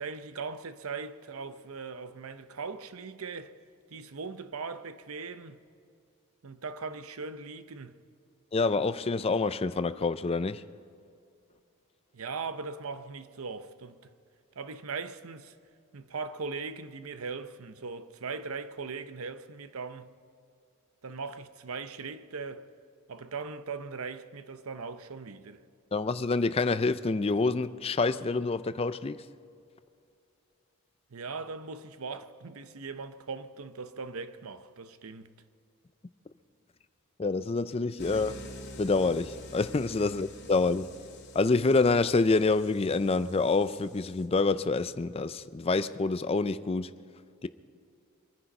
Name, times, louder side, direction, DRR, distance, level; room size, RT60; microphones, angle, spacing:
voice 1, 0.0-3.6 3.9-5.6 6.4-8.0 12.1-14.0 14.6-15.5 15.9-20.1 21.0-22.7 23.1-25.6 31.1-35.3, right 4 dB, 85° right, 0.8 m, -39 dB
voice 2, 8.5-10.6 25.9-29.2 37.2-38.4 38.8-40.9 41.3-46.9 47.4-47.5, left 3 dB, 25° left, 0.4 m, -27 dB
sound 1, 38.0-44.2, left 1 dB, 55° left, 2.2 m, -47 dB
24.0 x 10.0 x 5.4 m
head